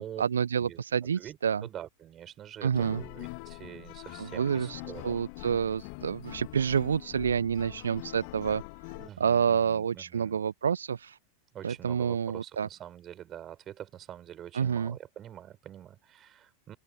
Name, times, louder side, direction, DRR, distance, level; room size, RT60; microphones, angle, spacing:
voice 1, 0.0-1.7 2.6-3.0 4.2-8.6 9.2-11.2 11.6-12.7 14.5-15.0, right 7 dB, 70° right, 1.3 m, -28 dB
voice 2, 1.2-5.1 9.0-10.4 11.5-16.8, right 11 dB, 30° right, 7.6 m, -45 dB
sound 1, 2.7-9.1, left 34 dB, 45° left, 3.3 m, -44 dB
open air
figure-of-eight pair, 90°, 0 cm